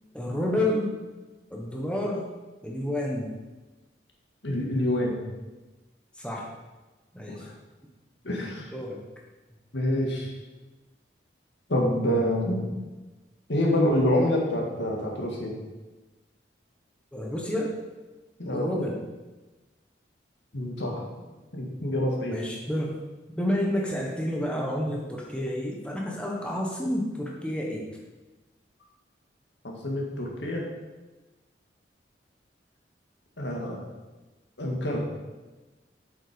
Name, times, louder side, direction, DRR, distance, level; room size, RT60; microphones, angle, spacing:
voice 1, 0.1-0.9 1.5-2.2 2.6-3.3 6.1-6.5 7.1-7.5 8.7-9.0 17.1-17.8 18.5-19.0 22.3-23.0 23.4-27.9 34.9-35.0, left 1 dB, 5° left, -2 dB, 1.2 m, -29 dB
voice 2, 4.4-5.2 7.3-7.5 8.2-8.7 9.7-10.3 11.7-12.7 13.5-15.5 18.4-18.7 20.5-21.1 21.5-22.3 29.6-30.7 33.4-33.8 34.6-35.0, left 1 dB, 75° left, -1 dB, 2.0 m, -27 dB
7.9 x 7.6 x 5.2 m, 1.2 s
head